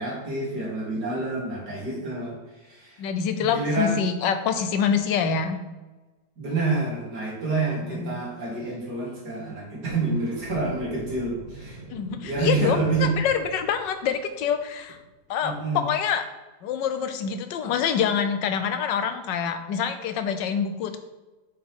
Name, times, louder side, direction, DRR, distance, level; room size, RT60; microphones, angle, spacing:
voice 1, 0.0-3.0 3.4-4.0 6.4-11.8 12.2-13.1 15.4-15.8, right 3 dB, 60° right, -5 dB, 2.8 m, -28 dB
voice 2, 3.0-5.6 7.8-8.2 11.9-15.0 15.3-16.3 16.6-21.0, left 7 dB, 75° left, 9 dB, 1.4 m, -26 dB
sound 1, 9.9-15.1, right 3 dB, 85° right, 2.9 m, -43 dB
8.5 x 4.5 x 3.7 m, 1.1 s
omnidirectional pair, 2.0 m